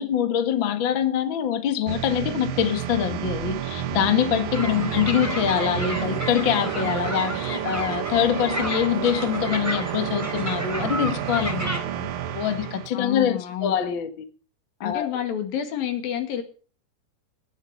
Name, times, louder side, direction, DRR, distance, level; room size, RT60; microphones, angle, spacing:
voice 1, 0.0-12.1 12.3-14.1 14.8-15.1, left 9 dB, 50° left, 7 dB, 1.5 m, -24 dB
sound 1, 1.9-12.9, right 10 dB, 70° right, 2.6 m, -30 dB
sound 2, 4.5-11.8, right 1 dB, 5° right, 3.5 m, -32 dB
voice 2, 4.7-5.2 12.9-13.8 14.8-16.4, left 9 dB, 65° left, 7 dB, 3.7 m, -29 dB
21.0 x 8.3 x 6.4 m, 0.39 s
omnidirectional pair, 4.5 m